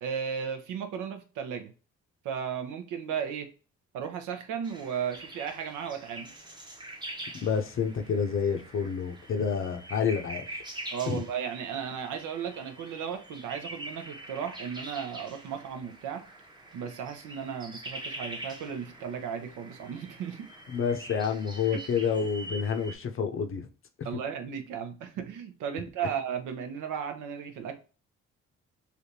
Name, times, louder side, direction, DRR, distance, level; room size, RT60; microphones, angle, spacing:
voice 1, 0.0-1.7 2.2-3.5 3.9-6.3 10.9-16.2 16.7-20.5 21.7-21.8 24.0-27.8, right 7 dB, 85° right, 0.7 m, -35 dB
sound 1, 4.6-23.0, right 1 dB, 15° right, 0.7 m, -44 dB
voice 2, 7.4-10.4 11.1-11.2 20.7-23.7, left 6 dB, 45° left, 0.6 m, -29 dB
3.3 x 2.6 x 2.7 m
cardioid pair, 90°, 30 cm